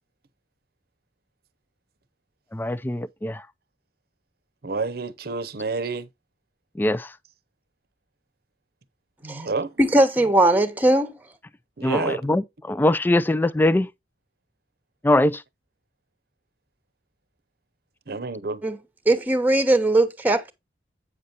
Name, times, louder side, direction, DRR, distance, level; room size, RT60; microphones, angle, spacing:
voice 1, 2.5-3.4 6.8-7.1 11.8-13.9 15.0-15.4, left 1 dB, 10° left, 0.3 m, -22 dB
voice 2, 4.6-6.1 9.2-9.7 11.8-12.2 18.1-18.6, right 3 dB, 60° right, 0.8 m, -29 dB
voice 3, 9.8-11.1 18.6-18.8 19.1-20.5, right 1 dB, 10° right, 1.0 m, -19 dB
8.5 x 6.7 x 2.9 m
head